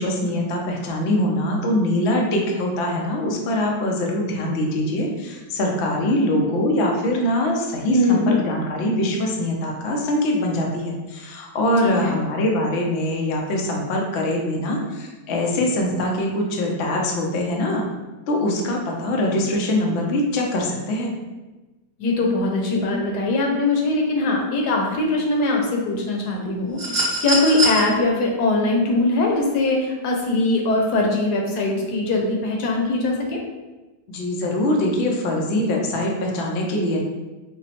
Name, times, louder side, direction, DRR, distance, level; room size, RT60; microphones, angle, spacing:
voice 1, 0.0-17.8 18.3-21.1 34.1-37.0, left 1 dB, 90° left, 0 dB, 0.5 m, -23 dB
voice 2, 7.9-8.3 11.8-12.2 22.0-33.4, left 2 dB, 70° left, 0 dB, 1.2 m, -21 dB
sound 1, 26.8-27.8 29.3-29.4, right 2 dB, 45° right, 0.8 m, -23 dB
5.1 x 2.0 x 2.8 m, 1.1 s
omnidirectional pair, 1.9 m